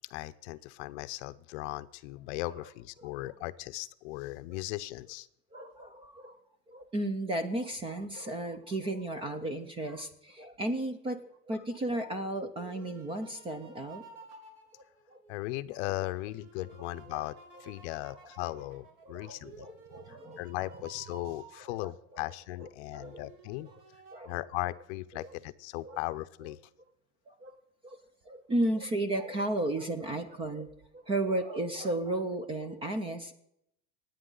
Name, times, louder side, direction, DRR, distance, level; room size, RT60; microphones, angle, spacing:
voice 1, 0.1-5.3 12.0-12.1 15.3-19.7 20.1-23.7 24.3-26.6, left 18 dB, 55° left, 14 dB, 0.6 m, -38 dB
voice 2, 3.0-3.3 5.5-6.4 6.7-14.0 15.1-15.2 17.1-17.3 17.9-18.2 19.0-20.7 21.2-21.3 21.6-22.2 22.6-23.3 24.1-24.3 25.2-25.3 25.8-26.0 27.3-27.6 27.8-33.3, right 1 dB, 15° right, 10 dB, 0.4 m, -34 dB
sound 1, 12.0-15.6 16.1-22.2 23.0-24.2, right 4 dB, 55° right, 2.9 m, -54 dB
27.0 x 9.1 x 3.9 m, 0.77 s
supercardioid pair, 170°, 40 cm